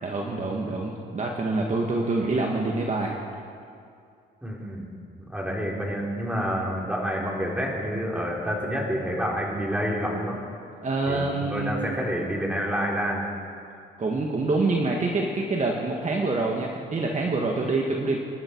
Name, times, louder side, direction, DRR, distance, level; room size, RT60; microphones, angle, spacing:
voice 1, 0.0-3.2 10.8-12.0 14.0-18.2, right 3 dB, 35° right, 0 dB, 1.9 m, -26 dB
voice 2, 4.4-4.9 5.2-10.4 11.1-13.2, equal, 5° right, -3 dB, 4.2 m, -28 dB
26.5 x 11.0 x 4.7 m, 2.4 s
cardioid pair, 90°, 20 cm